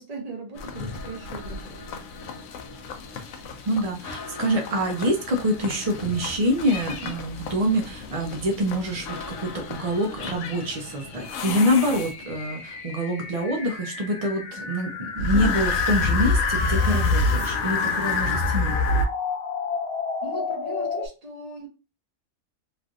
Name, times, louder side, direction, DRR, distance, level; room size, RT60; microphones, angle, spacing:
voice 1, 0.0-1.8 20.2-21.7, right 2 dB, 35° right, 0 dB, 0.7 m, -38 dB
sound 1, 0.6-12.5 15.2-19.1, left 3 dB, 70° left, 0.9 m, -28 dB
voice 2, 3.6-18.7, equal, 65° right, 2 dB, 0.3 m, -26 dB
sound 2, 9.2-21.1, left 4 dB, 90° left, 1.0 m, -34 dB
3.2 x 2.5 x 2.4 m, 0.31 s
omnidirectional pair, 1.4 m